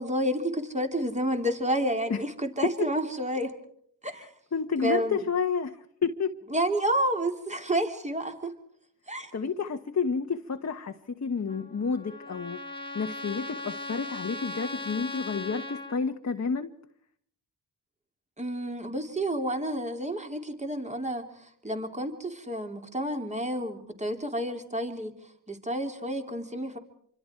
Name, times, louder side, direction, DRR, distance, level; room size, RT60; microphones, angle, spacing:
voice 1, 0.0-3.6 4.0-4.3 4.8-5.2 6.5-8.5 9.1-9.3 18.4-21.3 21.6-25.1 25.5-26.8, right 1 dB, 15° right, 4 dB, 3.4 m, -30 dB
voice 2, 4.1-6.4 9.3-12.6 12.9-16.7, left 5 dB, 40° left, 6 dB, 1.2 m, -30 dB
Trumpet, 11.5-16.0, left 2 dB, 10° left, 2.2 m, -38 dB
27.0 x 25.0 x 4.6 m, 0.65 s
cardioid pair, 60°, 42 cm